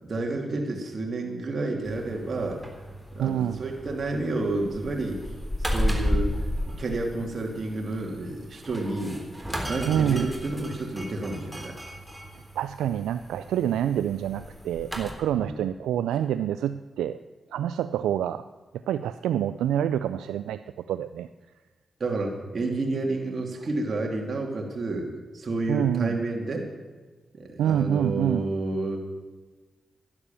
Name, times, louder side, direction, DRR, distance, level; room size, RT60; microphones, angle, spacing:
voice 1, 0.0-2.6 3.1-5.2 5.6-6.3 6.8-9.2 9.6-11.8 15.3-15.6 22.0-25.0 25.3-26.7 27.3-29.0, right 2 dB, 55° right, 1 dB, 2.7 m, -30 dB
sound 1, 1.8-15.1, equal, 5° right, 3.6 m, -34 dB
voice 2, 3.2-3.6 9.9-10.3 12.6-17.2 17.5-18.5 18.9-21.3 25.7-26.2 27.6-28.5, right 10 dB, 85° right, 12 dB, 0.3 m, -27 dB
11.5 x 11.0 x 7.1 m, 1.3 s
supercardioid pair, 40°, 0 cm